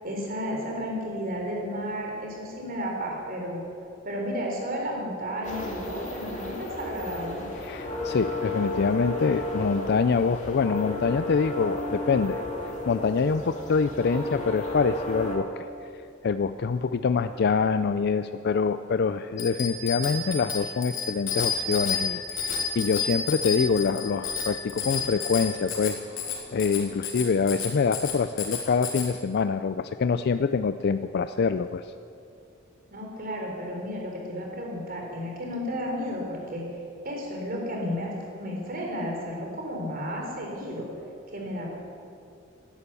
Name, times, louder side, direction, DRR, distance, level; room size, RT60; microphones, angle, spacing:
voice 1, 0.0-3.6 4.0-7.5 32.9-36.6 37.0-38.1 38.4-40.9 41.3-41.7, equal, 45° right, 0 dB, 3.8 m, -32 dB
sound 1, 5.4-15.4, left 1 dB, 35° left, 2.3 m, -33 dB
voice 2, 7.6-12.4 12.9-15.7 16.2-26.0 26.5-31.9, left 5 dB, 55° left, 11 dB, 0.4 m, -25 dB
Bicycle bell, 19.4-29.1, left 5 dB, 90° left, 3.2 m, -31 dB
17.0 x 11.5 x 7.0 m, 2.5 s
head